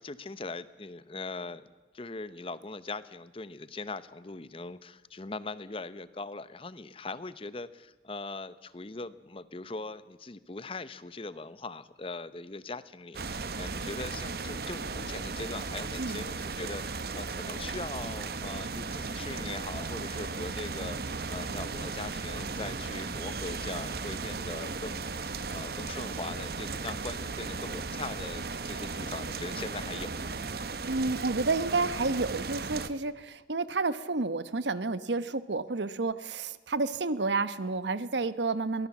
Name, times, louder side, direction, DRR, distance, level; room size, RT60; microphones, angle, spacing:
voice 1, 0.0-1.6 1.9-21.0 21.3-30.4, left 3 dB, 30° left, 15 dB, 0.8 m, -41 dB
sound 1, 13.1-32.9, right 4 dB, 60° right, 1.0 m, -36 dB
voice 2, 30.8-38.9, right 3 dB, 90° right, 14 dB, 1.0 m, -30 dB
23.5 x 18.0 x 7.2 m, 1.2 s
head